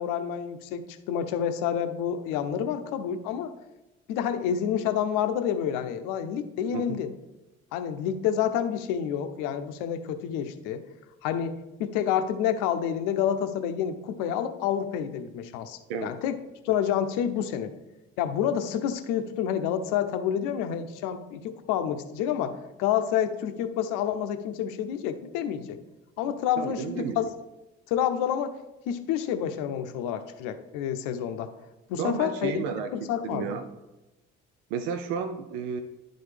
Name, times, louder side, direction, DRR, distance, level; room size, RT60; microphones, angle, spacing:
voice 1, 0.0-3.5 4.1-7.1 7.7-10.8 11.2-16.4 16.6-17.7 18.2-25.8 26.2-27.2 27.9-28.5 28.9-31.5 31.9-32.6 32.9-33.6, left 9 dB, 65° left, 9 dB, 0.7 m, -28 dB
voice 2, 26.2-27.3 32.0-33.7 34.7-35.8, right 6 dB, 70° right, 8 dB, 0.6 m, -33 dB
11.0 x 3.9 x 3.3 m, 1.1 s
figure-of-eight pair, 50°, 34 cm